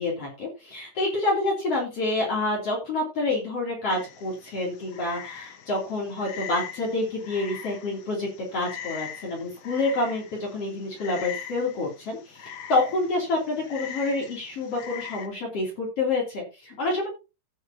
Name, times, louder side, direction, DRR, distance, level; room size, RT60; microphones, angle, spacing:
voice 1, 0.0-17.1, left 2 dB, 50° left, -3 dB, 4.1 m, -28 dB
Frog, 3.9-15.3, left 8 dB, 75° left, 2.7 m, -41 dB
17.0 x 6.5 x 2.9 m, 0.28 s
omnidirectional pair, 3.4 m